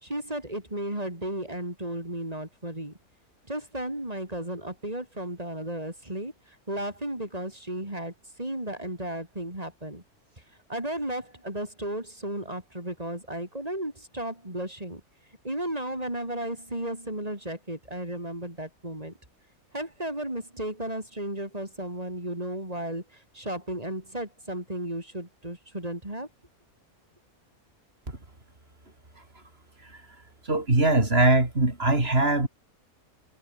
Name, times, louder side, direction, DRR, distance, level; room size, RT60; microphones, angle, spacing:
voice 1, 0.0-2.9 3.5-6.3 6.7-10.0 10.7-15.0 15.4-19.1 19.7-26.3, right 1 dB, 25° right, 5.1 m, -34 dB
voice 2, 30.5-32.5, right 2 dB, 45° right, 4.9 m, -21 dB
omnidirectional pair, 1.5 m